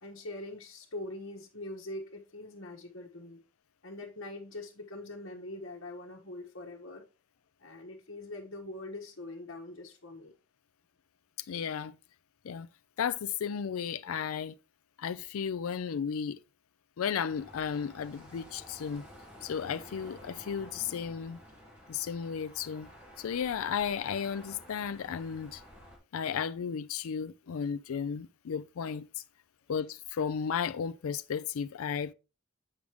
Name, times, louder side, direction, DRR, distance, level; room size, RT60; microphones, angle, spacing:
voice 1, 0.0-3.4 3.8-7.1 7.6-10.3, left 2 dB, 70° left, 1.4 m, -43 dB
voice 2, 11.5-11.9 12.4-12.7 13.0-14.5 15.0-16.4 17.0-19.0 19.4-21.4 21.9-22.9 23.2-25.6 26.1-29.1 29.7-32.1, left 7 dB, 85° left, 0.4 m, -34 dB
sound 1, 17.2-26.0, equal, 5° right, 3.9 m, -52 dB
8.7 x 6.2 x 3.5 m
head